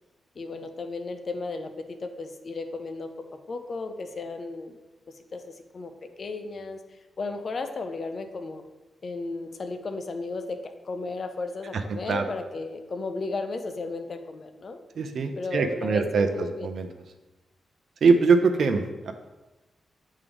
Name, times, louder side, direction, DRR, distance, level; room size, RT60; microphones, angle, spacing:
voice 1, 0.4-3.1 3.5-4.8 5.1-8.6 9.0-14.8 15.4-16.7, left 3 dB, 45° left, 7 dB, 0.5 m, -34 dB
voice 2, 15.0-16.9 18.0-19.1, right 4 dB, 65° right, 7 dB, 0.6 m, -23 dB
8.1 x 3.7 x 3.5 m, 1.1 s
wide cardioid pair, 110°, 0 cm